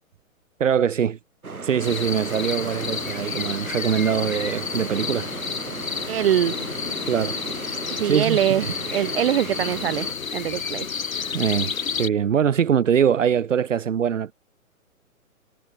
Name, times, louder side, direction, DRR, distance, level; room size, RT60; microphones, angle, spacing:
voice 1, 0.6-1.2 1.6-5.3 7.1-7.4 8.0-8.4 11.3-14.3, right 8 dB, 60° right, 4.4 m, -22 dB
sound 1, 1.4-10.1, right 4 dB, 85° right, 3.8 m, -36 dB
sound 2, 1.8-12.1, left 6 dB, 70° left, 4.1 m, -31 dB
voice 2, 6.1-6.5 8.0-10.1 10.3-10.9, right 11 dB, 45° right, 0.7 m, -23 dB
figure-of-eight pair, 130°, 42 cm